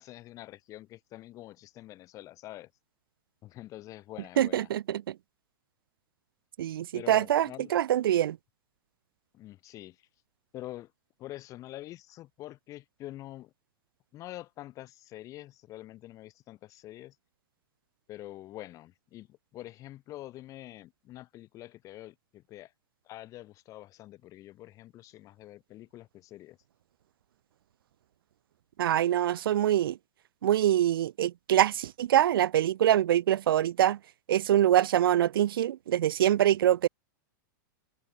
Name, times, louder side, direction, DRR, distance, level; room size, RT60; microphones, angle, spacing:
voice 1, 0.0-2.7 3.4-4.7 6.9-7.7 9.3-10.0 10.5-10.9 11.2-13.5 14.1-17.1 18.1-22.7 23.0-26.6, left 15 dB, 30° left, 3.2 m, -46 dB
voice 2, 4.4-5.2 6.6-8.4 28.8-30.0 30.4-34.0 34.3-36.9, right 11 dB, 80° right, 1.0 m, -24 dB
supercardioid pair, 155°, 12 cm